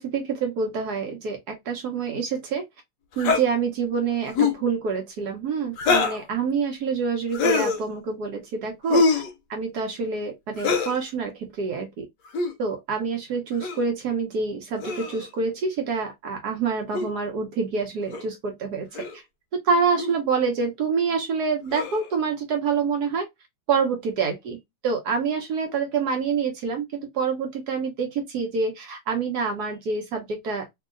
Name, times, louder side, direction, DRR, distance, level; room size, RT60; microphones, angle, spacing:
voice 1, 0.0-2.6 3.2-9.2 9.5-12.0 12.6-19.2 19.5-23.3 23.7-30.7, right 5 dB, 60° right, 1.1 m, -27 dB
sound 1, 3.2-3.4 4.3-4.6 5.8-6.2 7.3-7.8 8.9-9.3 10.6-11.0 12.3-12.5 13.6-13.8 14.8-15.3 16.9-17.1 18.1-18.2 18.9-19.2 20.0-20.1 21.7-22.1, left 4 dB, 70° left, 1.0 m, -24 dB
3.1 x 2.8 x 2.4 m
omnidirectional pair, 2.3 m